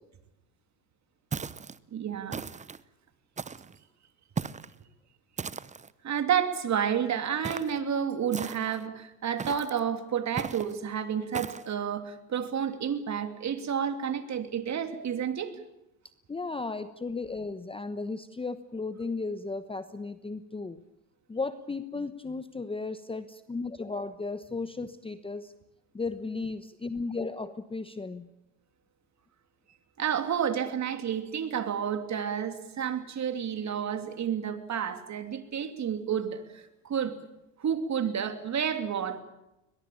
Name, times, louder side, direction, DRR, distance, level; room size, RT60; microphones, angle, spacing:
sound 1, 1.3-1.8 2.3-2.8 3.4-3.8 4.4-4.7 5.4-5.9 7.4-7.8 8.3-8.8 9.4-9.8 10.4-10.7 11.3-11.7, right 5 dB, 15° right, 0.8 m, -37 dB
voice 1, 1.9-2.4 6.0-15.6 30.0-37.2 37.6-39.2, right 8 dB, 35° right, 8 dB, 2.8 m, -30 dB
voice 2, 16.3-20.8 21.3-25.5 25.9-28.3, left 3 dB, 10° left, 12 dB, 1.0 m, -35 dB
21.5 x 21.5 x 8.8 m, 0.91 s
supercardioid pair, 95°, 46 cm